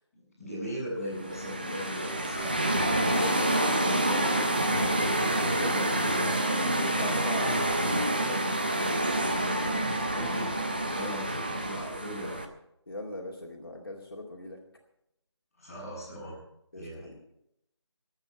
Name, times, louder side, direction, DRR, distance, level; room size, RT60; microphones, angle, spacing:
voice 1, 0.1-2.6 6.0-7.1 9.7-10.5 10.8-12.4 15.6-16.4 16.7-17.1, equal, 5° left, -15 dB, 5.7 m, -39 dB
sound 1, 1.1-12.5, right 1 dB, 20° right, 0.7 m, -28 dB
voice 2, 3.1-8.7 12.9-14.6 16.7-17.2, left 1 dB, 50° left, -1 dB, 2.3 m, -40 dB
22.5 x 8.9 x 4.8 m, 0.80 s
figure-of-eight pair, 175°, 15 cm